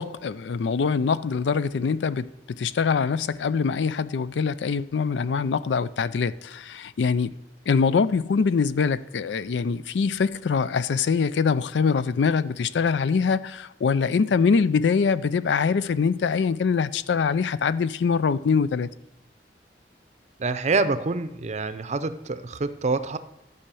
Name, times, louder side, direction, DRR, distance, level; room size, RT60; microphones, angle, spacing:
voice 1, 0.0-7.3 7.7-18.9, left 5 dB, 75° left, 0.4 m, -24 dB
voice 2, 20.4-23.2, right 3 dB, 40° right, 0.6 m, -26 dB
12.0 x 5.6 x 6.9 m
head